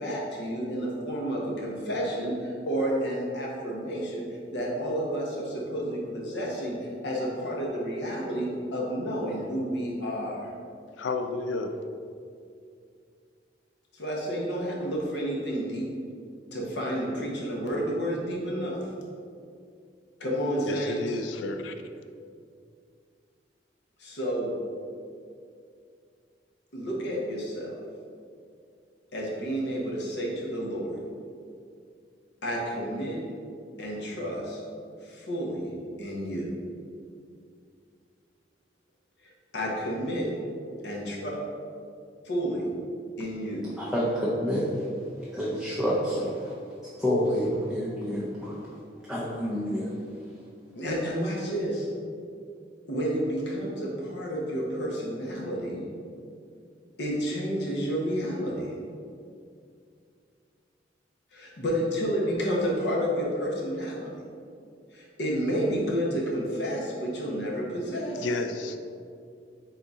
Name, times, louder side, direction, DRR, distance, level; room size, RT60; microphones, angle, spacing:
voice 1, 0.0-10.5 13.9-15.9 16.5-18.8 20.2-21.2 24.0-24.5 26.7-27.7 29.1-30.9 32.4-33.2 33.8-34.6 35.0-35.7 36.0-36.5 39.5-40.3 40.8-41.3 42.2-42.7 43.2-43.6 50.7-51.9 52.9-55.9 57.0-58.8 61.3-64.2 64.9-68.3, equal, 65° left, -2 dB, 0.9 m, -30 dB
voice 2, 11.0-11.8 20.7-21.7 68.2-68.8, left 3 dB, 90° left, 8 dB, 0.4 m, -31 dB
voice 3, 43.8-44.7 45.3-46.5 47.0-48.6 49.1-49.9, equal, ahead, -7 dB, 0.5 m, -28 dB
4.1 x 3.7 x 3.5 m, 2.4 s
head